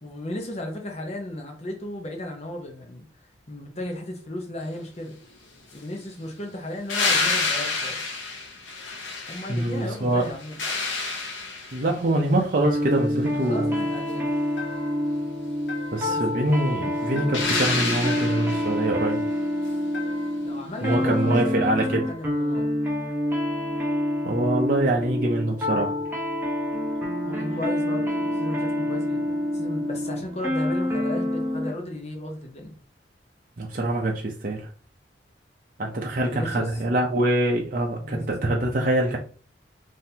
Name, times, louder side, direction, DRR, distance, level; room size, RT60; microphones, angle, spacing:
voice 1, 0.0-3.0 3.5-5.2 5.7-8.0 9.3-10.6 13.4-14.3 16.1-16.2 20.4-22.7 27.2-32.7 36.2-36.7 38.0-38.2, left 1 dB, 35° left, 0.7 m, -35 dB
sound 1, 6.9-9.8 10.2-12.0 17.3-18.8 21.4-21.5, left 3 dB, 85° left, 0.9 m, -28 dB
voice 2, 9.5-10.3 11.7-13.7 15.9-19.2 20.8-22.1 24.2-25.9 33.6-34.7 35.8-39.2, right 1 dB, 45° right, 0.6 m, -24 dB
sound 2, 12.6-31.8, left 1 dB, 10° right, 0.8 m, -27 dB
sound 3, 14.6-15.1 15.7-16.2 17.2-17.7 18.1-18.6 19.9-20.5 21.8-22.3, left 3 dB, 65° left, 1.2 m, -39 dB
3.8 x 2.7 x 2.8 m
head